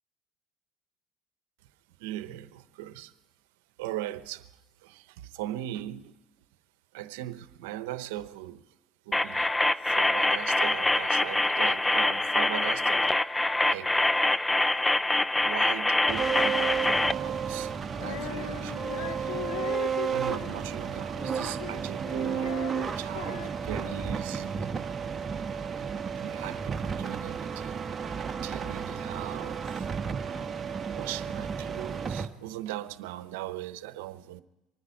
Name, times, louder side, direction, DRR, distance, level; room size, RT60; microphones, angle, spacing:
voice 1, 2.0-3.1 3.8-4.5 4.8-6.2 6.9-8.7 9.0-9.5 9.8-13.2 13.7-13.9 15.3-17.7 18.0-19.5 20.1-22.6 22.9-24.7 26.2-27.8 28.4-29.9 30.9-34.4, right 14 dB, 85° right, 0.8 m, -39 dB
sound 1, 9.1-17.1, left 2 dB, 10° left, 0.4 m, -25 dB
sound 2, 16.1-32.3, right 6 dB, 30° right, 1.2 m, -32 dB
Female singing, 17.9-24.4, left 12 dB, 90° left, 0.6 m, -40 dB
25.0 x 10.0 x 5.2 m
supercardioid pair, 95°, 0 cm